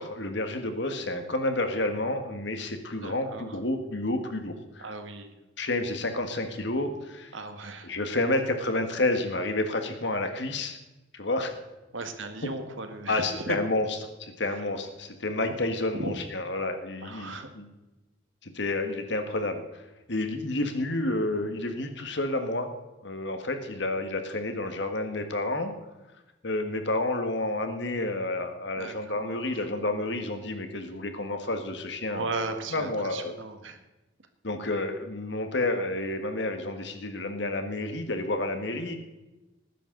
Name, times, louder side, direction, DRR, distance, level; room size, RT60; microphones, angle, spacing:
voice 1, 0.0-4.9 5.6-7.3 7.8-10.8 11.1-11.5 13.1-13.9 14.2-17.7 18.4-19.8 20.1-22.7 23.0-25.7 26.4-32.3 32.7-33.3 34.4-39.0, left 2 dB, 60° left, 6 dB, 1.6 m, -30 dB
voice 2, 2.9-3.6 4.8-5.3 7.3-7.9 11.9-13.6 14.5-14.6 15.9-16.1 17.0-17.5 28.8-29.6 32.1-33.8, right 2 dB, 75° right, 7 dB, 1.6 m, -36 dB
19.0 x 10.0 x 3.9 m, 1.1 s
head